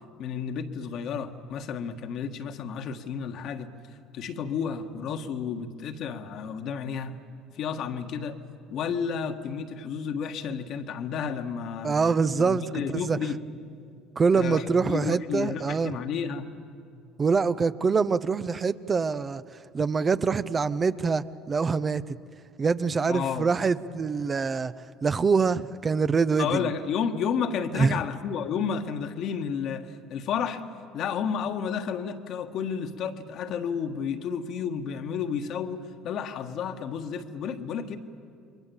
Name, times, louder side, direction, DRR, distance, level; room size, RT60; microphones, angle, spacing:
voice 1, 0.2-3.7 4.1-7.1 7.5-8.4 8.7-12.0 12.4-13.4 14.3-16.5 23.1-23.5 26.4-30.6 30.9-38.0, left 7 dB, 60° left, 1.7 m, -31 dB
voice 2, 11.8-12.6 12.9-13.2 14.2-15.9 17.2-19.4 19.7-22.0 22.6-24.7 25.0-26.7 27.7-28.0, right 5 dB, 30° right, 0.8 m, -24 dB
29.0 x 23.0 x 7.2 m
hypercardioid pair, 65°, 0 cm